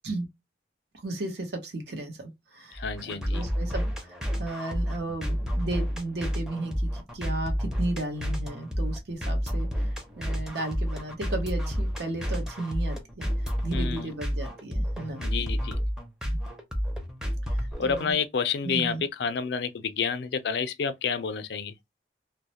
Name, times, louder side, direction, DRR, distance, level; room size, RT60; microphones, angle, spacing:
voice 1, 0.9-13.3 13.6-15.2 16.2-16.4 17.5-18.2 18.6-19.0, right 2 dB, 75° right, 0.8 m, -35 dB
voice 2, 2.7-3.4 13.7-14.1 15.2-15.8 17.8-21.7, left 6 dB, 70° left, 0.4 m, -29 dB
sound 1, 2.7-18.1, equal, 5° right, 0.5 m, -30 dB
2.2 x 2.0 x 2.8 m
head